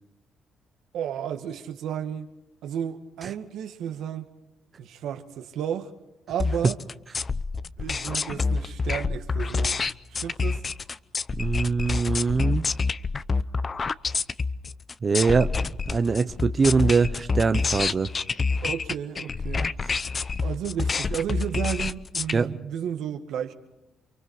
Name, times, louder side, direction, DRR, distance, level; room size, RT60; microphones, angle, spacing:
voice 1, 0.9-2.3 2.6-4.2 4.8-5.9 6.3-6.8 7.8-9.8 10.1-10.6 18.6-19.7 20.4-23.5, right 9 dB, 80° right, 2.0 m, -32 dB
sound 1, 6.4-22.3, left 4 dB, 35° left, 0.7 m, -27 dB
voice 2, 11.4-12.7 15.0-15.5 15.9-18.1 22.3-22.5, right 4 dB, 40° right, 0.9 m, -23 dB
29.5 x 23.5 x 4.9 m
cardioid pair, 90°, 0 cm